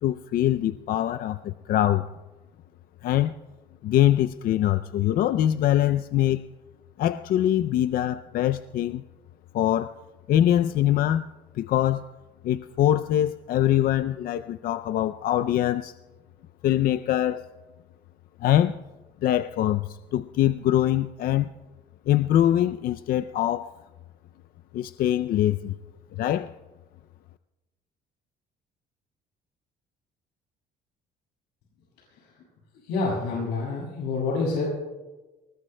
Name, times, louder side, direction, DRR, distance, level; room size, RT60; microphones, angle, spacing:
voice 1, 0.0-2.1 3.0-3.3 3.8-6.4 7.0-9.0 9.5-9.9 10.3-11.3 11.5-12.1 12.4-15.9 16.6-17.4 18.4-18.8 19.2-21.5 22.1-23.7 24.7-25.8 26.1-26.5, left 12 dB, 60° left, 12 dB, 0.4 m, -23 dB
voice 2, 32.8-34.6, left 3 dB, 85° left, -4 dB, 6.1 m, -28 dB
28.5 x 20.0 x 2.2 m, 1.2 s
cardioid pair, 110°, 17 cm